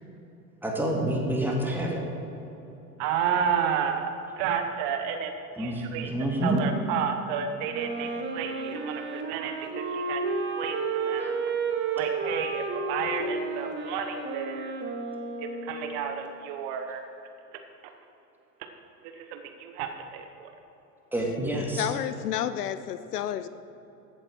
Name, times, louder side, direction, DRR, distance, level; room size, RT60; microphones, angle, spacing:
voice 1, 0.6-2.0 5.6-5.8 6.1-6.6 21.1-21.9, right 1 dB, 5° right, -1 dB, 2.2 m, -27 dB
voice 2, 3.0-5.3 5.6-11.4 11.9-14.7 15.4-17.0 17.5-17.6 19.1-20.5, right 7 dB, 45° right, 6 dB, 1.1 m, -31 dB
Wind instrument woodwind instrument, 7.7-16.0, right 4 dB, 20° right, 1.3 m, -32 dB
voice 3, 21.8-23.5, left 10 dB, 70° left, 13 dB, 0.6 m, -30 dB
14.5 x 8.0 x 4.6 m, 3.0 s
figure-of-eight pair, 85°, 49 cm